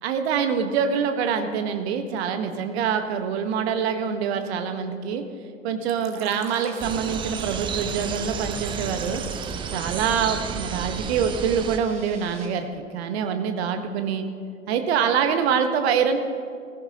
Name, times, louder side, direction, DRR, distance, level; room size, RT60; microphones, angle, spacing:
voice 1, 0.0-5.2 5.6-9.2 9.7-12.7 12.9-14.2 14.7-16.2, right 7 dB, 55° right, 7 dB, 1.4 m, -25 dB
Fill (with liquid), 5.9-9.7, right 7 dB, 35° right, 1.5 m, -45 dB
sound 1, 6.5-12.5, right 4 dB, 70° right, 2.3 m, -46 dB
sound 2, 6.8-11.8, right 7 dB, 15° right, 0.4 m, -32 dB
20.5 x 15.0 x 2.9 m, 2.2 s
figure-of-eight pair, 85°, 39 cm